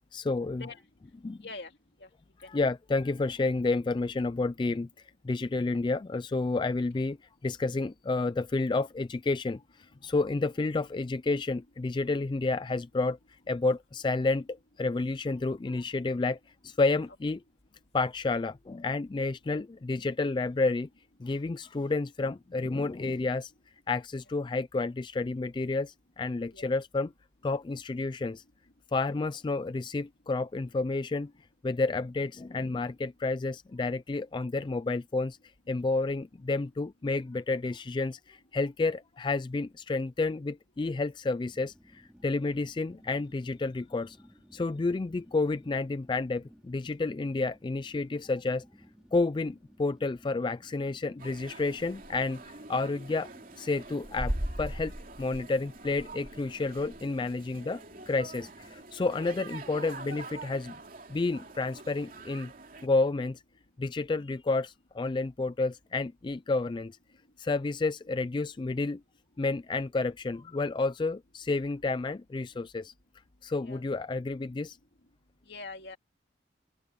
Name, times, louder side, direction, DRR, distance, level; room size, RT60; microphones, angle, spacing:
voice 1, 0.1-0.7 1.2-1.4 2.5-16.4 16.6-17.4 17.9-20.9 21.2-23.5 23.9-27.1 27.4-28.4 28.9-31.3 31.6-35.4 35.7-44.2 44.5-48.6 49.1-53.3 53.6-54.3 54.6-54.9 55.2-60.7 61.1-62.5 62.8-63.4 63.8-67.0 67.4-69.0 69.4-72.9 73.4-74.8, left 3 dB, 25° left, 0.3 m, -30 dB
Fire, 41.4-58.8, equal, 5° right, 4.5 m, -59 dB
sound 1, 51.2-62.9, right 1 dB, 50° right, 2.9 m, -42 dB
voice 2, 75.5-76.0, left 3 dB, 60° left, 2.8 m, -43 dB
open air
head